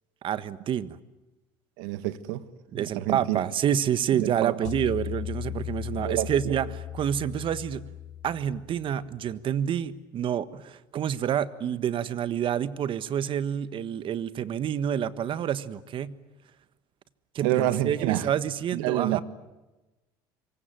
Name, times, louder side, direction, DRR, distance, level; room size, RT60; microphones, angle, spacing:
voice 1, 0.2-1.0 2.7-7.8 8.2-16.2 17.3-19.2, right 9 dB, 45° right, 1.5 m, -28 dB
voice 2, 1.8-2.4 2.7-3.4 4.2-4.7 6.0-6.6 17.4-18.3 18.7-19.2, right 14 dB, 80° right, 1.7 m, -28 dB
sound 1, 4.6-9.0, left 12 dB, 70° left, 4.4 m, -37 dB
26.5 x 23.5 x 9.3 m
supercardioid pair, 105°, 12 cm